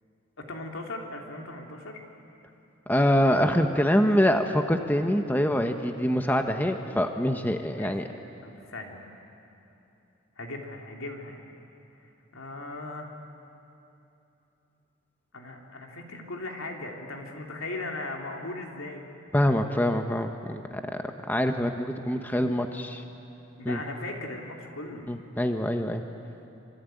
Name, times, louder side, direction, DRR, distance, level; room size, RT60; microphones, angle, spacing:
voice 1, 0.4-2.0 7.8-8.1 8.4-9.0 10.4-11.4 12.0-13.1 15.3-19.1 22.1-22.6 23.6-25.1, left 2 dB, 85° left, 1 dB, 3.5 m, -38 dB
voice 2, 2.9-8.0 19.3-20.6 20.9-23.0 23.6-23.8 25.1-26.0, equal, 10° left, 5 dB, 1.0 m, -25 dB
26.0 x 24.5 x 9.3 m, 2.9 s
head